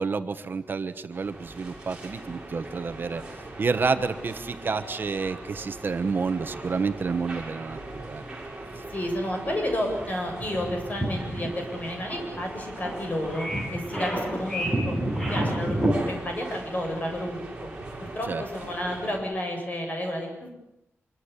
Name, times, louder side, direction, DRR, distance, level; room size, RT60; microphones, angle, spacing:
voice 1, 0.0-3.2 3.6-8.2 8.8-8.9 18.2-18.4, right 4 dB, 50° right, 9 dB, 1.3 m, -29 dB
sound 1, 1.1-19.2, right 2 dB, 20° right, 7.1 m, -40 dB
voice 2, 8.9-15.0 15.2-17.5 18.1-20.5, left 1 dB, 35° left, 2 dB, 7.9 m, -31 dB
sound 2, 10.4-15.9, right 1 dB, 10° left, 7.6 m, -29 dB
26.0 x 24.0 x 8.4 m, 0.86 s
wide cardioid pair, 165°, 5 cm